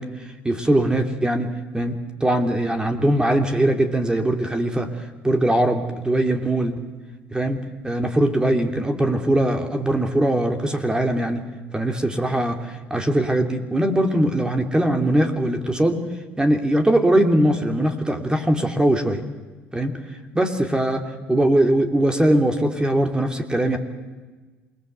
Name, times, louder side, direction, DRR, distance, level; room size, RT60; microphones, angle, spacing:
voice 1, 0.0-6.7 7.3-7.6 7.8-11.4 11.7-16.0 16.4-19.2 19.7-21.0 21.3-23.8, right 1 dB, 15° right, 5 dB, 2.9 m, -21 dB
28.0 x 20.5 x 8.1 m, 1.3 s
supercardioid pair, 70°, 6 cm